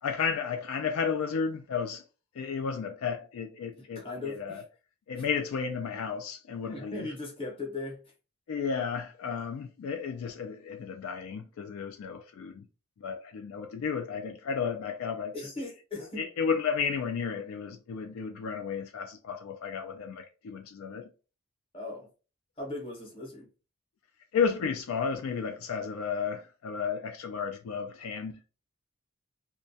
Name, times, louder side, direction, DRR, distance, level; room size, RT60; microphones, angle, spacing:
voice 1, 0.0-2.0 2.4-4.6 5.1-7.1 8.5-12.7 13.0-15.3 16.2-21.1 24.3-28.4, left 6 dB, 70° left, 0.3 m, -33 dB
voice 2, 3.8-4.6 5.2-5.3 6.6-8.0 15.3-16.2 21.7-22.1 22.6-23.5, left 2 dB, 25° left, 0.8 m, -38 dB
2.2 x 2.2 x 2.6 m
head